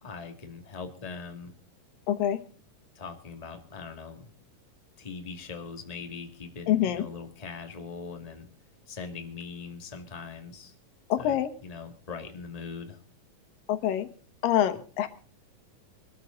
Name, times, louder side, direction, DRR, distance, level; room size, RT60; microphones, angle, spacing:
voice 1, 0.0-1.5 2.9-4.2 5.0-8.5 8.9-10.7 11.2-13.0, left 5 dB, 15° left, 4 dB, 1.7 m, -41 dB
voice 2, 2.1-2.4 6.7-7.0 11.1-11.5 13.7-14.1 14.4-15.1, left 11 dB, 90° left, 10 dB, 3.0 m, -25 dB
23.0 x 13.0 x 3.9 m, 0.40 s
omnidirectional pair, 3.9 m